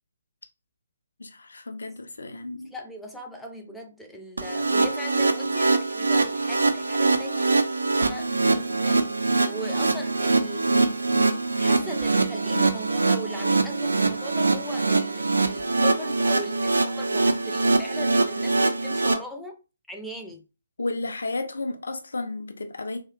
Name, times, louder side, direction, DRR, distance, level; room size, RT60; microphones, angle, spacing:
voice 1, 1.2-2.7 20.8-23.0, left 2 dB, 70° left, 0.5 m, -32 dB
voice 2, 2.7-7.5 7.9-9.1 9.5-11.0 11.6-19.5 19.9-20.4, equal, ahead, 0.4 m, -39 dB
sound 1, 4.4-19.1, right 3 dB, 80° right, 0.4 m, -23 dB
2.7 x 2.0 x 2.4 m
figure-of-eight pair, 135°, 0 cm